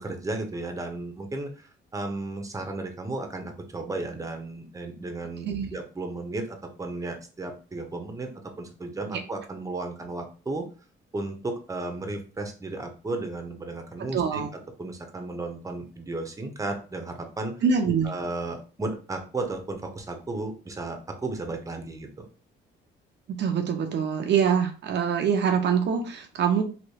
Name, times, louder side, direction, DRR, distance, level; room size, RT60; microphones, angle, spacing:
voice 1, 0.0-8.3 8.6-10.7 11.1-17.5 18.0-22.3, right 2 dB, 15° right, 5 dB, 0.7 m, -34 dB
voice 2, 5.4-5.7 14.1-14.5 17.6-18.1 23.3-26.6, right 7 dB, 60° right, 4 dB, 0.5 m, -24 dB
3.1 x 2.8 x 2.7 m, 0.37 s
cardioid pair, 90°, 20 cm